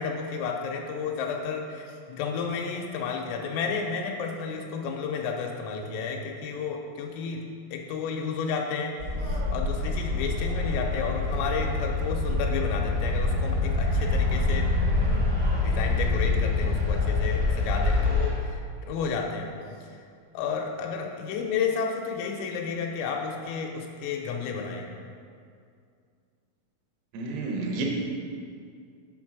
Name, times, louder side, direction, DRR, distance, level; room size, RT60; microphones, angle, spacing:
voice 1, 0.0-15.4 15.6-19.5 19.9-20.0 20.3-24.9, left 5 dB, 90° left, 1 dB, 3.3 m, -32 dB
sound 1, 9.0-18.3, left 3 dB, 70° right, 0.9 m, -26 dB
voice 2, 27.1-27.9, right 3 dB, 85° right, -1 dB, 3.6 m, -30 dB
7.9 x 4.6 x 6.0 m, 2.3 s
omnidirectional pair, 5.9 m